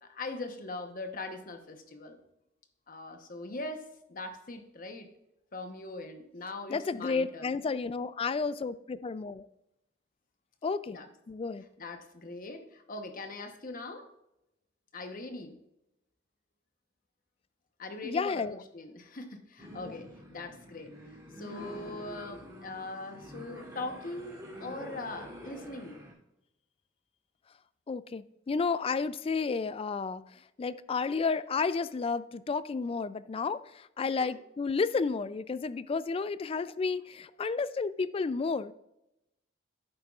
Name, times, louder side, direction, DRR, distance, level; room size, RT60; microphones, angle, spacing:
voice 1, 0.0-2.2 2.9-5.1 5.5-7.6 10.9-11.1 11.8-14.1 14.9-15.6 17.8-26.0 34.2-34.3, left 2 dB, 45° left, 6 dB, 1.0 m, -41 dB
voice 2, 6.7-9.5 10.6-11.0 11.3-11.6 18.0-18.6 19.8-19.9 27.9-30.2 30.6-38.7, left 4 dB, 30° left, 16 dB, 0.3 m, -31 dB
sound 1, 19.6-26.1, equal, 15° right, 2.9 m, -47 dB
11.0 x 8.8 x 2.4 m, 0.86 s
head